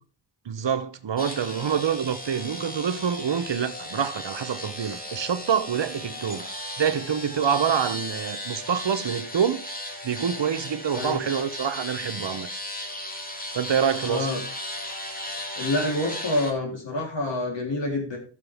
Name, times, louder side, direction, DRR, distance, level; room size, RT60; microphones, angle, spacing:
voice 1, 0.4-6.5 6.8-9.7 10.0-12.5 13.5-14.3, right 7 dB, 85° right, 1.0 m, -26 dB
sound 1, 1.2-16.5, left 1 dB, 20° left, 2.1 m, -36 dB
voice 2, 10.9-11.2 14.1-14.4 15.5-18.2, left 1 dB, 85° left, 3.6 m, -27 dB
13.5 x 6.8 x 3.5 m
wide cardioid pair, 75°, 43 cm